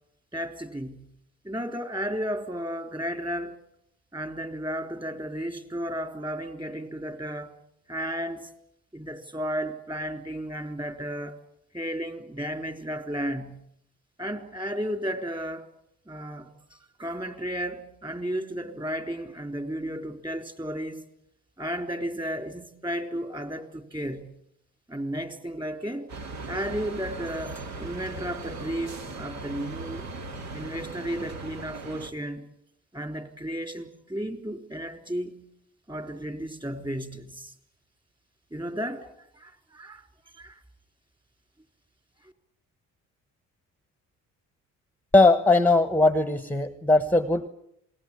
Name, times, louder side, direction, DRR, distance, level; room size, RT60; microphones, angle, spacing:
voice 1, 0.3-1.2 1.4-3.6 4.1-7.5 7.9-8.5 8.9-11.4 11.7-13.7 14.2-15.7 16.1-21.1 21.6-24.4 24.9-26.1 26.5-30.1 30.5-32.5 32.9-35.4 35.9-37.5 38.5-40.0 40.3-40.6, equal, 15° right, 3.7 m, -33 dB
sound 1, 26.1-32.1, right 3 dB, 65° right, 2.4 m, -38 dB
voice 2, 45.1-47.5, left 2 dB, 5° left, 1.3 m, -20 dB
28.0 x 20.0 x 8.6 m
cardioid pair, 90°, 30 cm